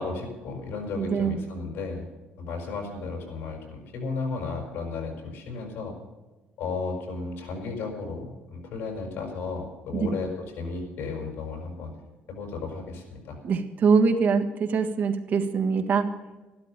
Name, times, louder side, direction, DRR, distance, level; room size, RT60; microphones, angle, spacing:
voice 1, 0.0-2.1 2.4-5.9 6.6-11.9 12.3-13.4, left 4 dB, 80° left, 2 dB, 6.0 m, -34 dB
voice 2, 0.9-1.4 9.9-10.2 13.4-16.1, right 5 dB, 50° right, 5 dB, 1.6 m, -23 dB
13.0 x 12.5 x 6.8 m, 1.2 s
cardioid pair, 125°, 4 cm